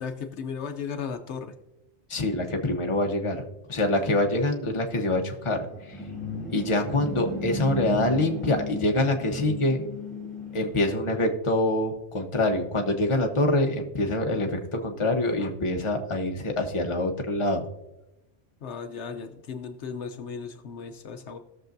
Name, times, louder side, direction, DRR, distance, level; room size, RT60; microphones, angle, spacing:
voice 1, 0.0-1.5 18.6-21.4, left 6 dB, 75° left, 7 dB, 1.0 m, -36 dB
voice 2, 2.1-3.4 3.7-6.0 6.5-9.8 10.5-17.6, left 2 dB, 30° left, 3 dB, 1.0 m, -25 dB
sound 1, 5.6-11.1, equal, ahead, 2.8 m, -35 dB
18.0 x 6.7 x 2.6 m, 0.99 s
omnidirectional pair, 1.2 m